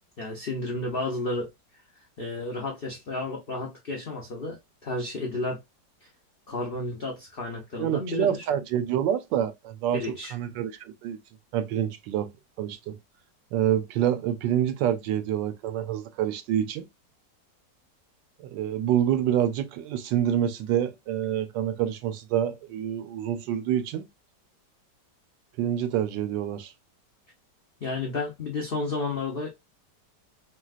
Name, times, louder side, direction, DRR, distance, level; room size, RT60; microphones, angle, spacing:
voice 1, 0.2-1.5 2.2-5.6 6.5-8.3 9.9-10.3 27.8-29.6, left 2 dB, 75° left, 0.5 m, -32 dB
voice 2, 7.8-11.2 11.5-12.3 12.6-13.0 13.5-16.9 18.4-24.1 25.6-26.7, right 10 dB, 85° right, 1.3 m, -27 dB
4.0 x 2.2 x 2.3 m
omnidirectional pair, 1.9 m